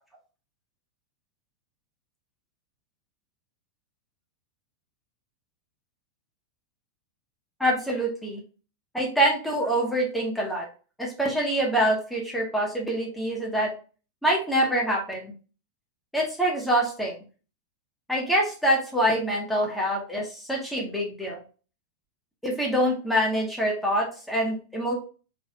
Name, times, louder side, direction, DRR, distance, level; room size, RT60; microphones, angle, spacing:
voice 1, 7.6-8.4 8.9-10.7 11.0-13.7 14.2-15.3 16.1-17.2 18.1-21.4 22.4-24.9, right 1 dB, ahead, -2 dB, 1.5 m, -25 dB
4.2 x 4.2 x 2.5 m, 0.35 s
figure-of-eight pair, 90°, 0 cm